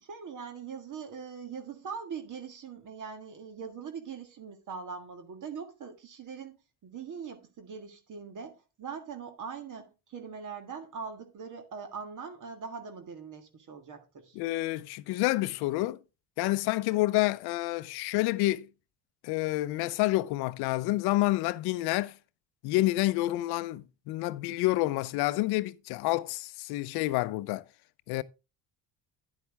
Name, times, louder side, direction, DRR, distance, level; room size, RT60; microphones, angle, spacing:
voice 1, 0.0-6.6 6.8-14.4, right 6 dB, 55° right, 1.8 m, -42 dB
voice 2, 14.3-16.0 16.4-18.7 19.2-22.1 22.6-27.6 28.1-28.2, left 18 dB, 80° left, 0.6 m, -28 dB
9.8 x 8.1 x 3.4 m
supercardioid pair, 85°, 38 cm